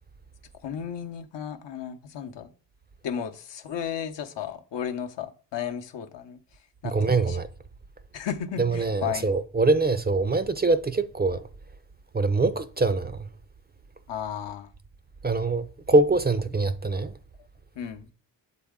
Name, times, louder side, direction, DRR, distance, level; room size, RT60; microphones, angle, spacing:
voice 1, 0.6-2.5 3.0-6.4 6.8-7.4 8.1-9.3 14.1-14.7 17.8-18.1, left 8 dB, 75° left, 0.7 m, -34 dB
voice 2, 6.8-7.5 8.6-11.4 12.1-13.3 15.2-17.1, right 3 dB, 25° right, 0.4 m, -23 dB
7.1 x 4.2 x 3.6 m
cardioid pair, 65°, 43 cm